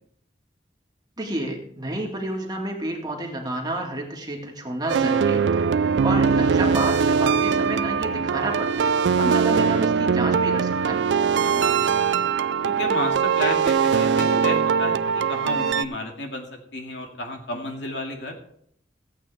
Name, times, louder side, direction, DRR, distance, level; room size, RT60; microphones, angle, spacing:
voice 1, 1.2-8.9 9.2-11.0, right 1 dB, 25° right, 0 dB, 1.9 m, -30 dB
sound 1, 4.9-15.8, right 6 dB, 80° right, 0.4 m, -21 dB
voice 2, 11.4-12.2 12.6-16.5 16.7-18.3, left 1 dB, 85° left, 2 dB, 2.3 m, -32 dB
15.5 x 8.5 x 3.4 m, 0.67 s
head